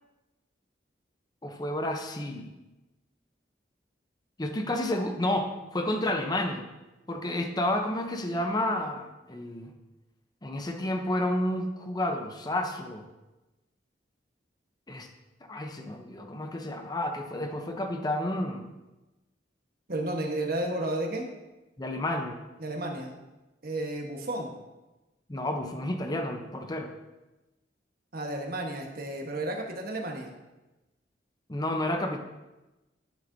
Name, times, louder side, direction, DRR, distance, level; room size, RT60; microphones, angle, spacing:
voice 1, 1.4-2.5 4.4-6.7 7.1-9.7 10.4-13.1 14.9-15.1 15.5-18.6 21.8-22.4 25.3-26.9 31.5-32.2, left 1 dB, 20° left, 4 dB, 0.7 m, -30 dB
voice 2, 19.9-21.3 22.6-23.2 23.6-24.5 28.1-30.3, right 1 dB, 55° right, 1 dB, 1.3 m, -32 dB
11.5 x 6.7 x 2.7 m, 1.1 s
head